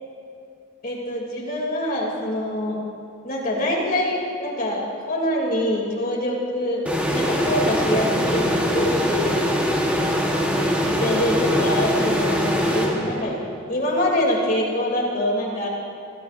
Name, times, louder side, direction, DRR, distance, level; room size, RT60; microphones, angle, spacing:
voice 1, 0.8-2.8 3.2-6.8 7.1-9.5 10.8-13.4 13.7-15.7, left 1 dB, 45° left, -3 dB, 3.0 m, -25 dB
sound 1, 6.9-13.5, equal, 5° right, 1.3 m, -22 dB
26.0 x 14.0 x 2.6 m, 2.5 s
head